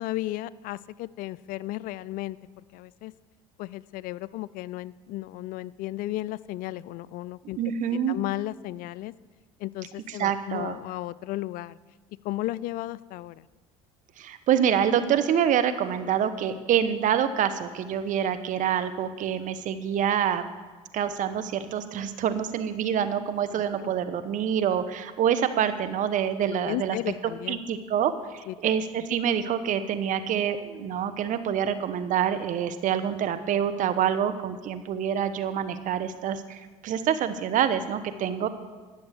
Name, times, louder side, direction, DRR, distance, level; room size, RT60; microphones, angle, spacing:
voice 1, 0.0-3.1 3.6-7.6 7.9-9.1 9.6-11.8 12.2-13.5 23.5-23.9 26.5-27.6 28.5-28.6, left 16 dB, 65° left, 20 dB, 0.4 m, -34 dB
voice 2, 7.6-8.2 10.2-10.8 14.2-20.4 20.9-27.0 27.5-38.5, right 9 dB, 55° right, 11 dB, 1.0 m, -26 dB
11.5 x 7.1 x 8.2 m, 1.3 s
hypercardioid pair, 75°, 16 cm